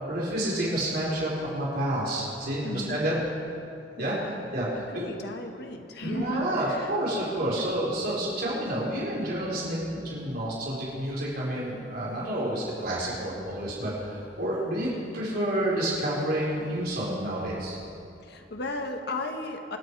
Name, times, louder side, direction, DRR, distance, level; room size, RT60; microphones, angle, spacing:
voice 1, 0.0-3.1 4.0-4.2 4.5-5.1 6.0-14.9 15.1-17.8, right 1 dB, 60° right, -6 dB, 4.0 m, -29 dB
voice 2, 2.6-3.0 4.0-7.0 7.6-7.7 18.2-19.8, left 1 dB, 65° left, 4 dB, 1.3 m, -35 dB
25.0 x 9.1 x 4.7 m, 2.7 s
head